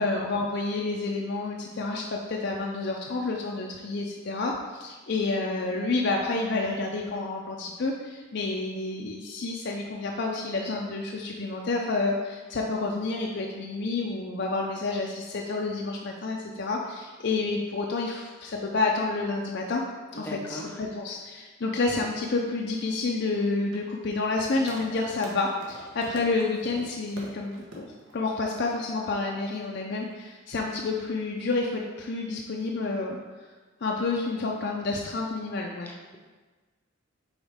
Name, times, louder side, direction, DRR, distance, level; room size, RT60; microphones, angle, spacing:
voice 1, 0.0-19.8 20.1-33.2 33.8-35.9, left 3 dB, 55° left, 0 dB, 0.5 m, -29 dB
voice 2, 20.1-20.8 35.8-36.2, equal, 10° left, 0 dB, 0.7 m, -39 dB
sound 1, 21.9-30.2, right 1 dB, 65° right, 1.2 m, -46 dB
7.1 x 4.4 x 3.5 m, 1.3 s
head